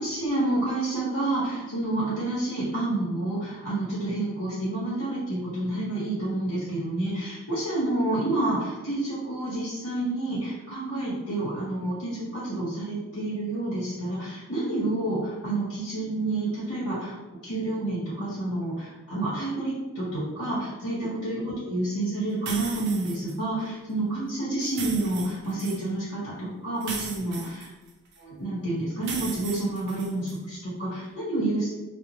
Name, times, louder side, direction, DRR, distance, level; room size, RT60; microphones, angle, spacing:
voice 1, 0.0-27.4 28.2-31.7, right 2 dB, 70° left, -11 dB, 1.2 m, -29 dB
sound 1, 22.5-23.3 24.6-25.8 26.8-28.2 29.0-30.4, right 4 dB, 50° right, 0.4 m, -37 dB
2.4 x 2.1 x 2.9 m, 1.1 s
head